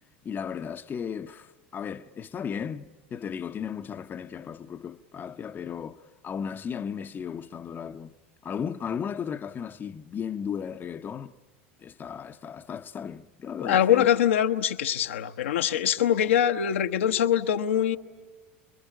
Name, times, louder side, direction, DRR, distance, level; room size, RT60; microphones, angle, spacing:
voice 1, 0.2-8.1 8.4-11.3 11.8-14.1, left 7 dB, 30° left, 0.8 m, -35 dB
voice 2, 13.6-18.0, left 10 dB, 75° left, 0.9 m, -23 dB
27.5 x 22.0 x 8.9 m
figure-of-eight pair, 75°, 7 cm